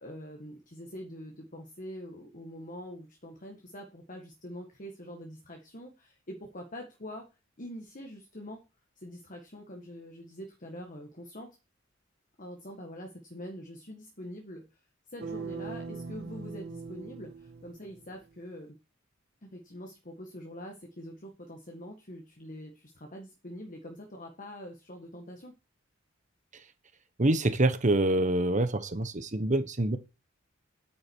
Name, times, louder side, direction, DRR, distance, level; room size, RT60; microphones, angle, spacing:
voice 1, 0.0-7.3 7.6-8.6 9.0-11.5 12.4-14.8 15.1-18.7 19.4-25.5, equal, 40° left, 1.7 m, -44 dB
sound 1, 15.2-18.2, right 4 dB, 55° right, 1.5 m, -41 dB
voice 2, 27.2-30.0, right 1 dB, 40° right, 1.3 m, -26 dB
10.0 x 8.9 x 4.7 m
head